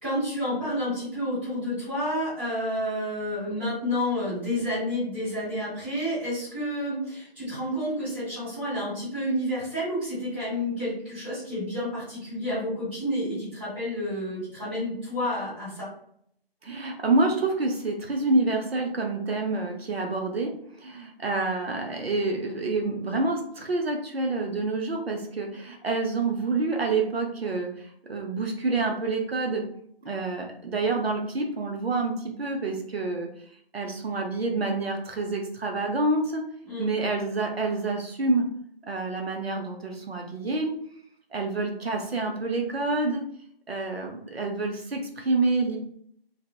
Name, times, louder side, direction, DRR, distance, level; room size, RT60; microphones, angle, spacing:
voice 1, 0.0-15.9 36.6-36.9, equal, 10° right, -14 dB, 0.9 m, -30 dB
voice 2, 16.6-29.7 30.0-33.3 33.7-36.4 36.8-38.5 38.9-40.7 41.3-43.2 43.7-45.8, right 3 dB, 75° right, 1 dB, 0.6 m, -27 dB
2.7 x 2.0 x 2.3 m, 0.68 s
figure-of-eight pair, 155°, 31 cm